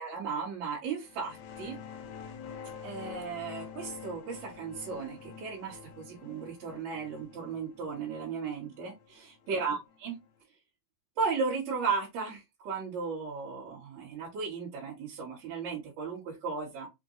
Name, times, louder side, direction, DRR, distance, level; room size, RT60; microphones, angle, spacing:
voice 1, 0.0-1.8 2.8-10.2 11.2-16.9, right 5 dB, 60° right, 2.6 m, -35 dB
sound 1, 1.0-10.3, left 7 dB, 85° left, 1.5 m, -47 dB
6.0 x 2.5 x 2.7 m
omnidirectional pair, 4.0 m